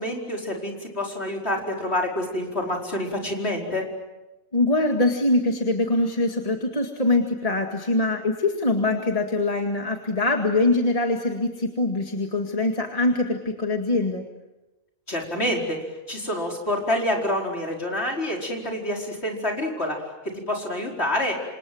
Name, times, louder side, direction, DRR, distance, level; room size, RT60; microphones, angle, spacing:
voice 1, 0.0-3.9 15.1-21.3, left 1 dB, 50° left, 0 dB, 5.1 m, -27 dB
voice 2, 4.5-14.2, left 2 dB, 30° left, 3 dB, 2.1 m, -23 dB
28.0 x 26.5 x 7.9 m, 1.0 s
omnidirectional pair, 1.4 m